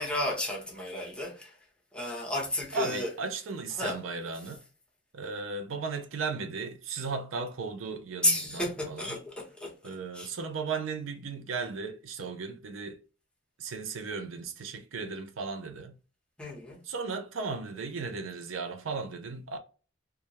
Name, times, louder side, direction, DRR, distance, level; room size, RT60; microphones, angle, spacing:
voice 1, 0.0-1.5 1.9-3.1 3.8-4.0 8.2-9.7 10.1-10.3 16.4-16.8, left 1 dB, 5° left, 0.8 m, -32 dB
voice 2, 2.7-4.6 5.1-9.2 9.8-13.0 13.6-15.9 16.8-19.6, right 4 dB, 85° right, 0.5 m, -36 dB
2.3 x 2.1 x 2.8 m
head